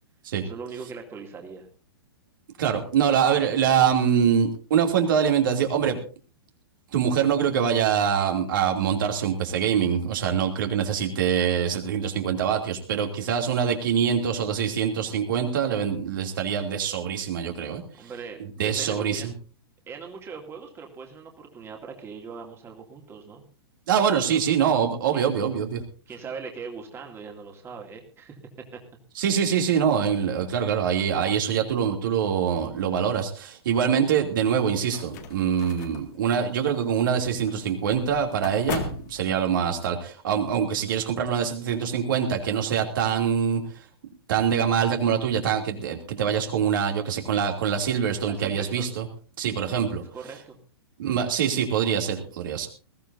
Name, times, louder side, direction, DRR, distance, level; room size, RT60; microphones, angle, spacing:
voice 1, 0.4-1.7 17.9-19.3 19.9-23.4 24.3-24.4 25.1-25.3 26.1-28.4 28.7-28.8 48.3-48.9 50.1-50.6, right 5 dB, 20° right, 2 dB, 2.5 m, -40 dB
voice 2, 2.6-6.0 6.9-17.8 18.4-19.3 23.9-25.8 29.2-43.6 44.3-49.1 49.4-50.0 51.0-52.7, right 8 dB, 55° right, 3 dB, 2.7 m, -24 dB
sound 1, 34.5-39.8, left 6 dB, 45° left, 2.1 m, -39 dB
21.0 x 15.5 x 2.7 m, 0.37 s
figure-of-eight pair, 110°, 13 cm